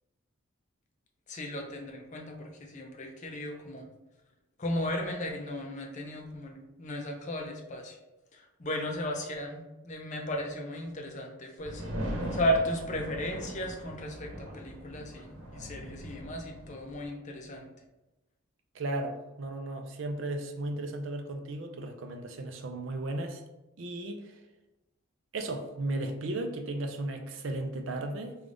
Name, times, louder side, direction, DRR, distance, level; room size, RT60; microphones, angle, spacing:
voice 1, 1.3-3.9 4.6-8.0 8.3-17.7, equal, 35° left, 2 dB, 0.5 m, -35 dB
sound 1, 11.6-17.1, equal, 90° right, 0.9 m, -39 dB
voice 2, 18.7-23.4 23.8-24.4 25.3-28.4, right 2 dB, 60° right, 5 dB, 0.4 m, -35 dB
3.4 x 2.4 x 3.7 m, 1.0 s
head